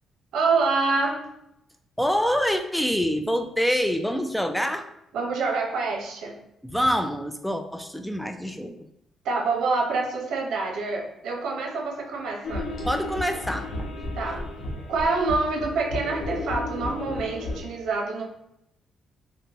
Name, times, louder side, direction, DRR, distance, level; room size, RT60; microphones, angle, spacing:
voice 1, 0.3-1.3 5.1-6.3 9.2-12.6 14.1-14.4 14.9-18.2, right 3 dB, 75° right, 0 dB, 0.7 m, -26 dB
voice 2, 2.0-4.9 6.6-8.9 12.9-14.3, equal, ahead, 7 dB, 0.3 m, -26 dB
sound 1, 12.4-17.6, left 2 dB, 65° left, 0.9 m, -33 dB
3.5 x 2.1 x 2.9 m, 0.80 s
cardioid pair, 90°, 0 cm